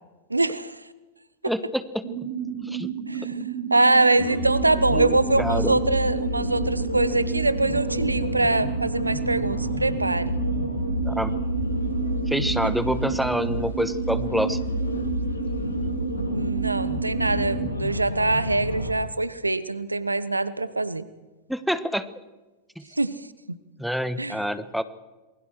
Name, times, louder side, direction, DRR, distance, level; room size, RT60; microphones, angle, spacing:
voice 1, 0.3-0.8 3.1-3.3 3.7-10.3 16.3-21.0 23.0-23.2 24.2-24.4, right 2 dB, 85° right, 16 dB, 1.0 m, -23 dB
voice 2, 1.4-2.3 2.6-2.9 4.9-5.8 11.0-11.3 12.3-14.6 21.5-22.1 22.8-22.9 23.8-24.8, equal, ahead, 13 dB, 1.2 m, -27 dB
sound 1, 2.0-17.7, right 8 dB, 55° right, 4.0 m, -32 dB
sound 2, 4.2-18.9, left 1 dB, 75° left, 2.7 m, -29 dB
27.5 x 21.0 x 4.7 m, 1.2 s
figure-of-eight pair, 90°, 0 cm